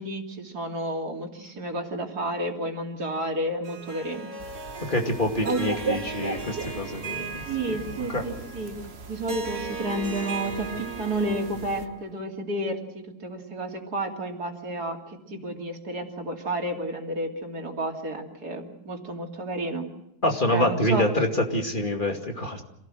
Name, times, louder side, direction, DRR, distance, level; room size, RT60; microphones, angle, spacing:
voice 1, 0.0-4.2 5.4-5.6 7.4-8.8 9.1-19.9 20.5-21.1, right 1 dB, 75° right, 2 dB, 3.4 m, -31 dB
Harp, 3.6-12.1, right 5 dB, 60° right, 4.4 m, -37 dB
sound 1, 4.4-11.9, right 4 dB, 45° right, 1.3 m, -38 dB
voice 2, 4.8-7.8 8.1-8.2 20.2-22.6, left 1 dB, 30° left, 3 dB, 2.6 m, -26 dB
26.5 x 17.5 x 7.7 m, 0.81 s
omnidirectional pair, 1.7 m